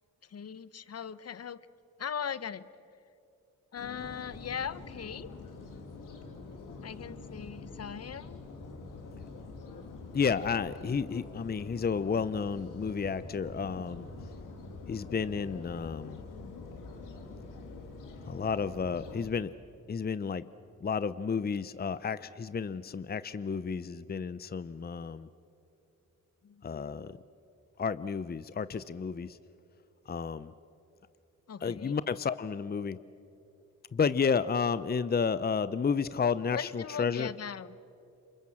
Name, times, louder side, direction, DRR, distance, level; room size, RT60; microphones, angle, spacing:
voice 1, 0.2-1.7 2.0-2.7 3.7-5.3 6.8-8.4 26.4-27.0 31.5-32.0 36.5-37.7, left 7 dB, 50° left, 16 dB, 1.0 m, -39 dB
sound 1, 3.8-19.3, left 3 dB, 85° left, 2.8 m, -45 dB
voice 2, 10.1-14.1 14.9-16.2 18.3-19.5 19.9-20.5 20.8-25.3 26.6-27.2 27.8-29.4 30.1-30.5 31.6-33.0 33.9-37.3, left 6 dB, 30° left, 15 dB, 0.7 m, -31 dB
28.0 x 24.0 x 7.7 m, 2.7 s
supercardioid pair, 55°, 31 cm